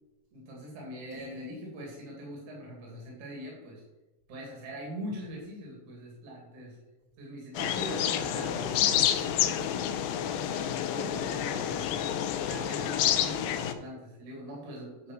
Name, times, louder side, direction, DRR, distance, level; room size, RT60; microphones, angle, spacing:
voice 1, 0.3-3.8 4.3-6.8 7.2-8.6 11.3-12.0 12.3-15.1, equal, 60° right, -2 dB, 3.4 m, -42 dB
voice 2, 1.1-1.8 7.7-11.5, right 1 dB, 75° right, -5 dB, 4.6 m, -42 dB
sound 1, 7.5-13.7, left 10 dB, 85° left, 2.4 m, -29 dB
9.4 x 5.6 x 6.1 m, 1.1 s
omnidirectional pair, 4.1 m